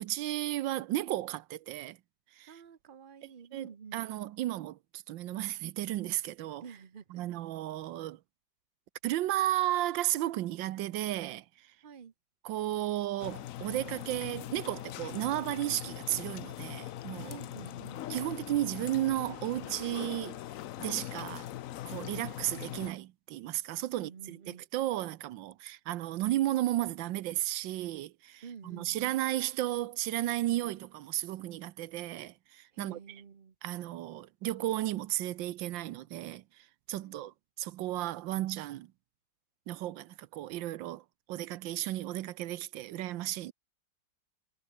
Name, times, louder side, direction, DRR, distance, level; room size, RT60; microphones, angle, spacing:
voice 1, 0.0-2.0 2.4-2.5 3.5-6.6 7.1-8.2 9.0-11.4 12.4-17.4 18.1-20.4 20.8-21.5 21.8-24.4 24.7-33.0 33.6-36.4 36.9-38.9 39.7-43.5, right 14 dB, 85° right, 1.4 m, -34 dB
voice 2, 2.5-4.1 6.6-7.2 11.8-12.1 17.3-18.0 23.9-24.7 28.4-29.1 32.7-33.5 37.0-37.3, right 6 dB, 35° right, 1.1 m, -49 dB
sound 1, 13.2-22.9, left 13 dB, 75° left, 0.7 m, -41 dB
omnidirectional pair, 2.0 m